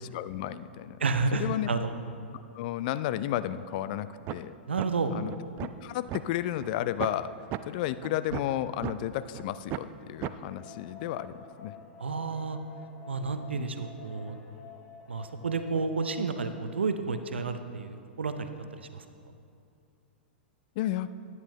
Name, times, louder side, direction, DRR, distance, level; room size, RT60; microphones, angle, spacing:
voice 1, 0.0-1.0 1.3-1.7 2.5-4.5 5.1-5.3 5.6-7.3 7.7-11.7 13.6-13.7 20.8-21.1, left 12 dB, 50° left, 14 dB, 0.4 m, -32 dB
voice 2, 1.0-1.9 4.7-5.2 12.0-12.6 13.1-14.4 15.1-18.5 18.8-19.0, right 4 dB, 80° right, 9 dB, 0.6 m, -31 dB
sound 1, 4.3-4.4 4.8-4.9 5.3-6.2 6.6-6.7 7.0-7.2 7.5-7.6 8.0-8.9 9.3-9.4 9.7-9.9 10.2-10.3, right 15 dB, 35° right, 0.3 m, -34 dB
sound 2, 10.5-16.5, left 7 dB, 30° left, 1.1 m, -50 dB
10.5 x 9.9 x 3.1 m, 2.5 s
figure-of-eight pair, 105°, 6 cm